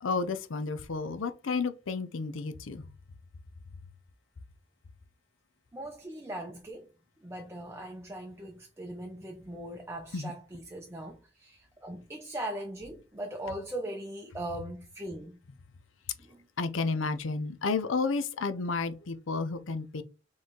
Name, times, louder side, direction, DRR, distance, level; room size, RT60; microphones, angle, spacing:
voice 1, 0.0-2.9 10.1-10.3 16.6-20.0, left 4 dB, 90° left, 0.6 m, -31 dB
voice 2, 5.7-6.9 7.2-15.4 16.2-16.5, right 1 dB, 15° right, 0.6 m, -40 dB
4.3 x 3.1 x 3.7 m
head